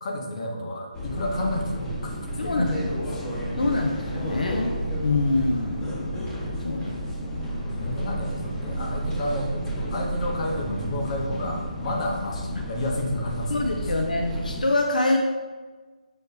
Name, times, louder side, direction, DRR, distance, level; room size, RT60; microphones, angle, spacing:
voice 1, 0.0-3.2 7.6-13.9, left 1 dB, 50° left, 1 dB, 0.8 m, -31 dB
sound 1, 0.9-14.6, right 1 dB, 15° left, 0.7 m, -31 dB
voice 2, 2.4-2.8 3.2-6.2 6.6-7.0 7.3-7.5 12.6-12.7 13.5-15.2, left 2 dB, 90° left, 3 dB, 0.4 m, -26 dB
6.2 x 2.2 x 3.3 m, 1.3 s
figure-of-eight pair, 150°, 4 cm